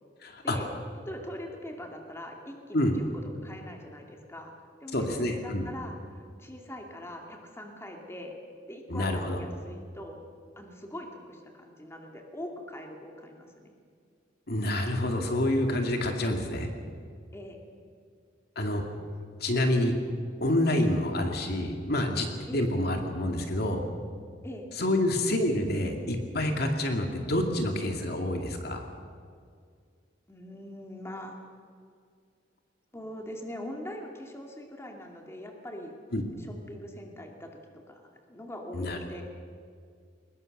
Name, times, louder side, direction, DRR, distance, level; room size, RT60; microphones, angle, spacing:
voice 1, 0.2-0.6 2.7-2.9 4.9-5.7 8.9-9.4 14.5-16.7 18.6-18.8 19.4-19.9 20.4-22.3 22.5-23.8 24.8-28.8 36.1-36.2 38.7-39.0, left 1 dB, 60° left, 3 dB, 2.4 m, -27 dB
voice 2, 1.1-4.5 4.8-8.4 8.7-10.3 10.6-13.7 17.3-17.6 22.5-22.6 24.4-24.7 30.3-31.4 32.9-35.9 36.4-37.6 37.9-39.2, left 1 dB, 15° left, 2 dB, 2.4 m, -42 dB
22.5 x 20.5 x 6.7 m, 2.2 s
head